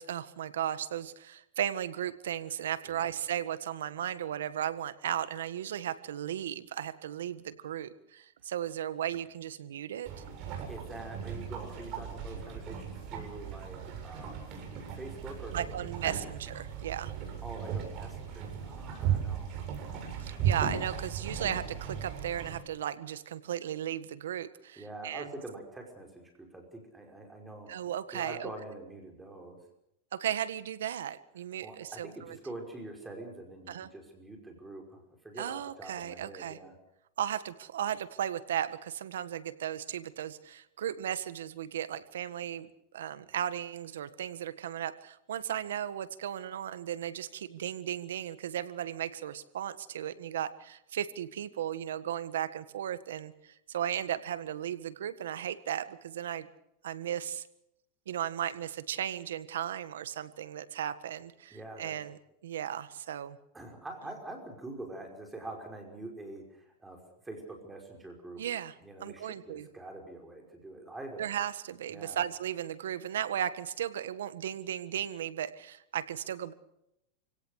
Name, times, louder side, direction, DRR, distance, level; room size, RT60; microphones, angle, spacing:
voice 1, 0.0-10.1 15.5-17.1 20.2-25.3 27.7-28.5 30.1-32.4 33.7-33.9 35.4-36.6 37.2-42.7 42.9-56.5 56.8-57.5 58.1-63.4 68.4-68.7 69.0-69.7 71.2-76.5, right 10 dB, 90° right, 13 dB, 1.6 m, -36 dB
sound 1, 10.0-22.6, right 8 dB, 40° right, 7.9 m, -36 dB
voice 2, 10.7-14.4 14.7-15.8 16.0-16.3 17.4-19.6 24.8-27.7 28.1-29.6 31.6-36.7 61.5-62.0 63.5-68.4 68.8-71.2 71.9-72.2, right 2 dB, 10° right, 2 dB, 5.4 m, -45 dB
28.5 x 17.5 x 6.6 m, 0.81 s
supercardioid pair, 135°, 0 cm